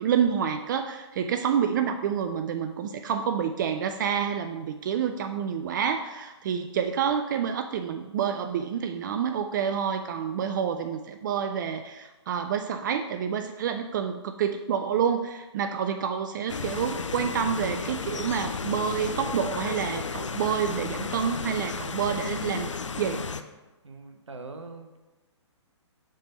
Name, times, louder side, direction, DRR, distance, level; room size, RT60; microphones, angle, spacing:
voice 1, 0.0-23.2, right 7 dB, 40° right, 8 dB, 0.4 m, -28 dB
sound 1, 16.5-23.4, left 5 dB, 85° left, 0.5 m, -33 dB
voice 2, 23.8-25.0, right 3 dB, 80° right, 6 dB, 0.9 m, -42 dB
7.4 x 3.4 x 5.4 m, 1.1 s
figure-of-eight pair, 130°, 15 cm